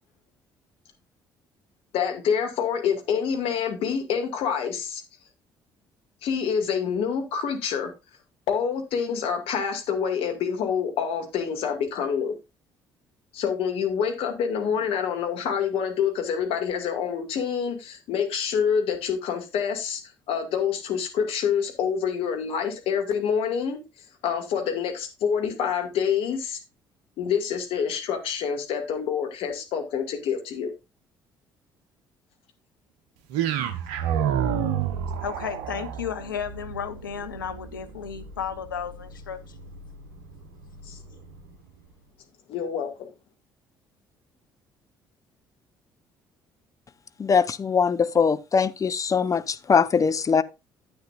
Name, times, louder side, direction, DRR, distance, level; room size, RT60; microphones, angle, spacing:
voice 1, 1.9-5.0 6.2-7.9 8.5-12.3 13.3-20.0 20.3-23.8 24.2-26.6 27.2-30.7 40.8-41.0 42.5-43.1, left 7 dB, 60° left, 2.2 m, -27 dB
sound 1, 33.3-41.5, right 9 dB, 70° right, 1.0 m, -31 dB
voice 2, 35.2-39.7, left 8 dB, 85° left, 0.8 m, -34 dB
voice 3, 47.2-50.4, left 6 dB, 30° left, 0.7 m, -22 dB
10.5 x 8.8 x 2.5 m
hypercardioid pair, 50°, 11 cm